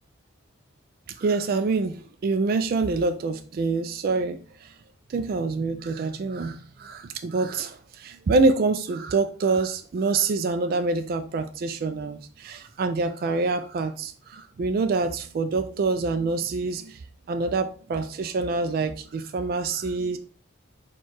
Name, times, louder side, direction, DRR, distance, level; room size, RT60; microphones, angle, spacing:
voice 1, 1.2-4.7 5.1-17.0 17.3-20.2, right 3 dB, 50° right, 8 dB, 0.3 m, -26 dB
4.4 x 2.3 x 4.4 m, 0.41 s
head